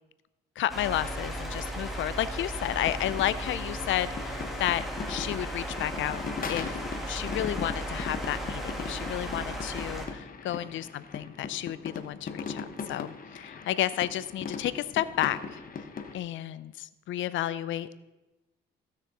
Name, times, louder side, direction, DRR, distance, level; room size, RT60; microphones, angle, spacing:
voice 1, 0.6-4.8 5.1-6.2 6.5-15.6 16.1-18.0, left 13 dB, 75° left, 16 dB, 0.5 m, -32 dB
sound 1, 0.7-10.1, equal, ahead, 1.9 m, -36 dB
sound 2, 2.7-16.2, left 5 dB, 45° left, 1.1 m, -39 dB
15.0 x 6.5 x 4.1 m, 1.1 s
cardioid pair, 90°, 20 cm